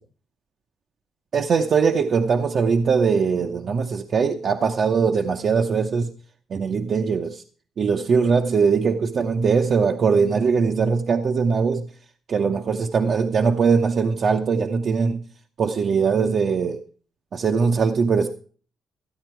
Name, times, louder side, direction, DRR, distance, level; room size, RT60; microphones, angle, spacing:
voice 1, 1.3-6.1 6.5-7.4 7.8-11.9 12.3-15.2 15.6-16.8 17.3-18.3, right 5 dB, 55° right, 0.8 m, -21 dB
14.0 x 8.8 x 4.6 m
cardioid pair, 90°, 0 cm